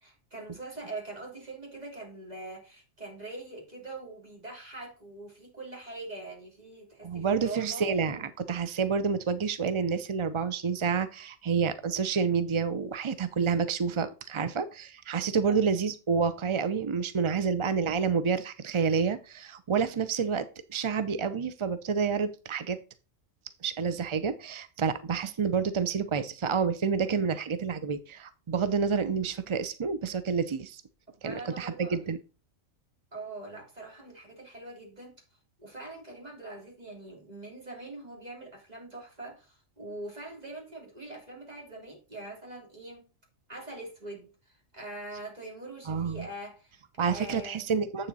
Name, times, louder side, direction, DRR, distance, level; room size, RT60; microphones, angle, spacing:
voice 1, 0.0-7.9 15.5-15.6 31.2-32.0 33.1-35.1 35.6-43.1 43.5-47.7, right 2 dB, 30° right, 3.2 m, -43 dB
voice 2, 7.0-22.8 23.6-30.8 31.2-32.2 45.9-46.2 47.0-48.1, right 6 dB, 45° right, 0.4 m, -29 dB
7.7 x 7.0 x 4.1 m
omnidirectional pair, 1.3 m